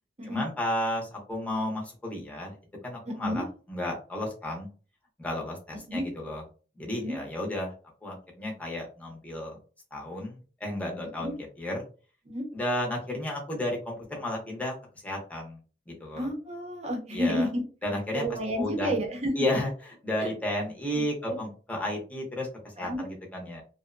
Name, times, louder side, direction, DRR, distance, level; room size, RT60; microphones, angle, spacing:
voice 1, 0.2-2.6 2.8-4.7 5.2-6.4 6.8-7.7 8.0-9.6 9.9-11.8 12.5-14.8 15.0-15.6 15.9-16.3 17.1-17.5 17.8-18.9 19.3-22.5 22.8-23.6, left 1 dB, 10° left, -2 dB, 0.7 m, -33 dB
voice 2, 3.1-3.4 5.9-6.0 6.9-7.2 11.2-11.3 12.3-12.4 16.1-17.6 18.1-19.3 20.2-20.3 20.9-21.4 22.8-23.0, equal, 40° right, 2 dB, 0.7 m, -31 dB
2.6 x 2.1 x 2.4 m, 0.37 s
head